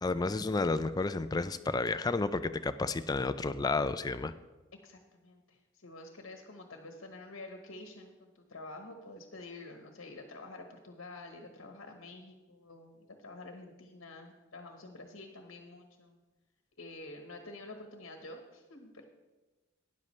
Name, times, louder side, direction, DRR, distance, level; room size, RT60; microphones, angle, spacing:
voice 1, 0.0-4.3, left 3 dB, 20° left, 12 dB, 0.4 m, -31 dB
voice 2, 4.8-16.2 16.8-19.0, left 2 dB, 75° left, 4 dB, 1.2 m, -48 dB
12.5 x 10.5 x 3.2 m, 1.1 s
head